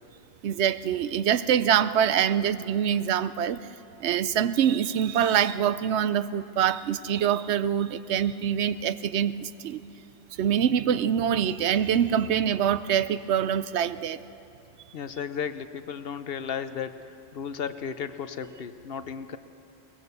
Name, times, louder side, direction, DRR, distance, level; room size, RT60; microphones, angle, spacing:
voice 1, 0.4-3.6 4.0-9.9 10.4-14.2, right 9 dB, 85° right, 14 dB, 0.9 m, -25 dB
voice 2, 14.9-19.4, left 7 dB, 65° left, 11 dB, 1.0 m, -34 dB
22.0 x 19.0 x 6.8 m, 3.0 s
omnidirectional pair, 1.1 m